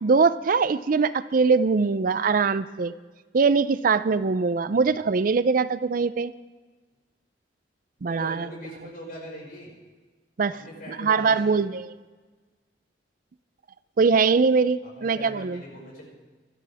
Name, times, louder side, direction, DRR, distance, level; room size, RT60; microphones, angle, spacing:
voice 1, 0.0-2.9 3.3-6.3 8.0-8.5 10.4-10.5 10.9-11.9 14.0-15.6, right 4 dB, 50° right, 15 dB, 0.4 m, -22 dB
voice 2, 4.7-5.0 8.1-9.8 10.5-11.6 14.8-16.0, equal, 50° left, -2 dB, 5.8 m, -41 dB
24.0 x 12.5 x 3.5 m, 1.3 s
head